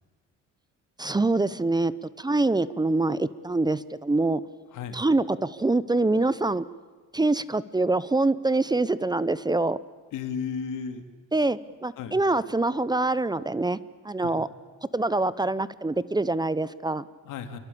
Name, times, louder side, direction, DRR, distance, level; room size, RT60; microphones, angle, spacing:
voice 1, 1.0-1.9 2.2-4.4 4.9-6.6 7.1-9.8 11.3-13.8 14.0-14.5 14.9-17.1, right 2 dB, 15° right, 17 dB, 0.7 m, -25 dB
voice 2, 10.1-11.1 12.0-12.1 14.2-14.3 17.2-17.6, left 6 dB, 90° left, 8 dB, 2.6 m, -33 dB
28.0 x 23.0 x 8.6 m, 1.5 s
cardioid pair, 120°, 30 cm